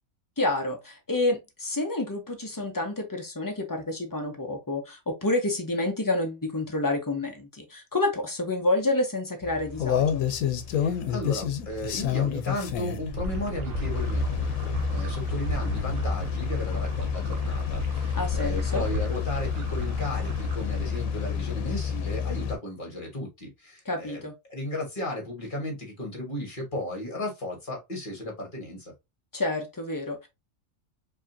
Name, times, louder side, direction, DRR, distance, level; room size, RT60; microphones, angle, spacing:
voice 1, 0.4-10.2 18.1-18.8 23.9-24.3 29.3-30.3, left 2 dB, 20° left, 0.7 m, -29 dB
sound 1, 9.4-22.6, left 8 dB, 90° left, 1.1 m, -29 dB
voice 2, 10.7-28.9, left 1 dB, 40° left, 1.6 m, -35 dB
sound 2, 13.2-21.7, right 3 dB, 55° right, 0.9 m, -35 dB
4.8 x 2.8 x 2.6 m
omnidirectional pair, 1.4 m